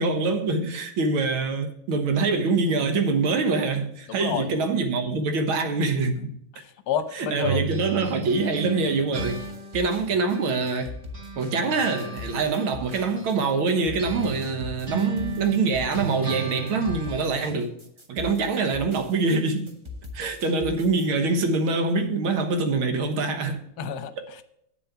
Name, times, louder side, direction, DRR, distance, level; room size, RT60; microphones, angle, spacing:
voice 1, 0.0-6.4 7.1-9.5 9.7-11.0 11.4-17.8 18.1-19.7 20.1-23.7 24.2-24.3, right 3 dB, 75° right, 2.0 m, -25 dB
voice 2, 4.1-4.6 6.5-7.6 23.8-24.4, left 8 dB, 55° left, 1.2 m, -30 dB
sound 1, 7.4-10.9 11.1-17.5, right 4 dB, 45° right, 3.7 m, -34 dB
sound 2, 9.2-21.1, left 3 dB, 25° right, 0.7 m, -42 dB
8.8 x 7.0 x 5.7 m
omnidirectional pair, 2.3 m